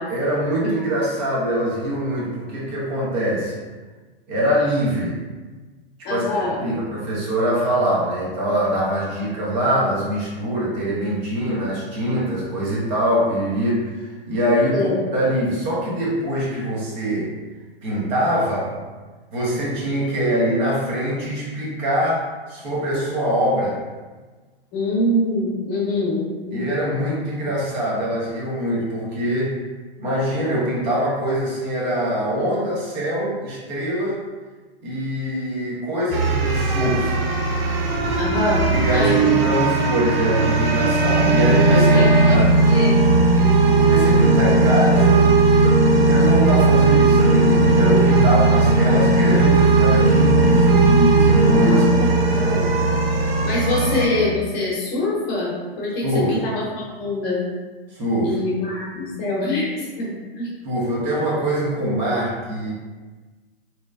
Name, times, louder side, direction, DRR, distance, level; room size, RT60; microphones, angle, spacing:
voice 1, 0.1-3.6 4.3-5.2 6.0-17.3 17.8-18.8 19.3-23.8 26.5-29.6 30.0-34.2 34.8-37.2 38.7-42.5 43.7-45.3 45.9-51.9 52.2-52.7 56.0-56.4 57.9-58.4 60.6-62.7, equal, 45° right, -6 dB, 1.0 m, -23 dB
voice 2, 6.0-6.5 14.7-14.9 24.7-26.6 38.2-39.4 41.9-42.4 42.7-43.1 51.7-52.7 53.4-56.6 57.0-57.4 58.2-60.5, left 2 dB, 30° left, -6 dB, 0.9 m, -24 dB
sound 1, 36.1-54.1, right 2 dB, 75° right, 0.6 m, -16 dB
3.0 x 2.1 x 2.4 m, 1.3 s
hypercardioid pair, 115°, 30 cm